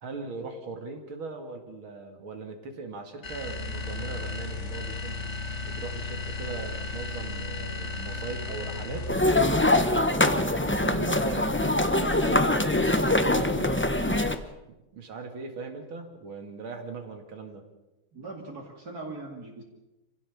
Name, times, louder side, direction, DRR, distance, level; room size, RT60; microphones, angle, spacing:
voice 1, 0.0-5.2 5.6-9.1 9.9-14.3 14.9-17.6, right 4 dB, 80° right, 5 dB, 3.0 m, -39 dB
sound 1, 3.2-9.4, left 3 dB, 35° left, 1.8 m, -35 dB
sound 2, 9.1-14.3, left 1 dB, 20° left, 0.3 m, -23 dB
voice 2, 12.0-12.5 18.1-19.6, right 2 dB, 50° right, -1 dB, 2.9 m, -39 dB
27.0 x 16.0 x 7.2 m, 1.1 s
omnidirectional pair, 2.2 m